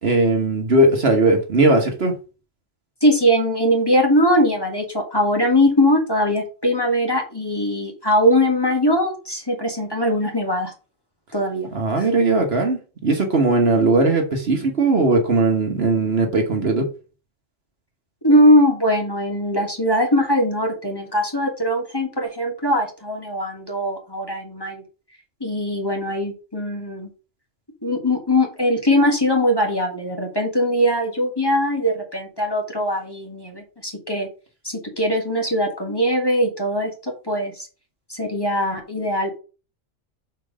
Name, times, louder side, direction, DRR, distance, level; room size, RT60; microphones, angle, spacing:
voice 1, 0.0-2.1 11.7-16.9, right 2 dB, 55° right, 1.4 m, -18 dB
voice 2, 3.0-10.7 11.3-11.7 12.0-12.1 18.2-24.8 25.4-27.1 27.8-34.3 34.6-37.7 38.1-39.4, equal, 20° left, 1.6 m, -21 dB
6.1 x 4.5 x 4.9 m
omnidirectional pair, 1.3 m